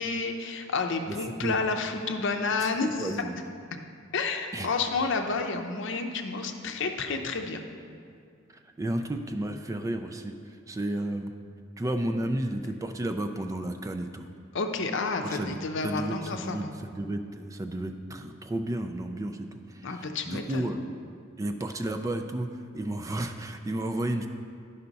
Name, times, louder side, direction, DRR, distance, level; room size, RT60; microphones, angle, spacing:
voice 1, 0.0-3.1 4.1-7.6 14.5-16.7 19.8-20.7, left 4 dB, 65° left, 5 dB, 0.7 m, -30 dB
voice 2, 3.0-3.3 4.5-4.7 8.8-11.3 11.8-14.3 15.2-15.6 15.8-20.8 21.4-22.5 22.7-24.3, right 1 dB, 15° right, 7 dB, 0.3 m, -32 dB
11.0 x 5.5 x 4.0 m, 2.3 s
head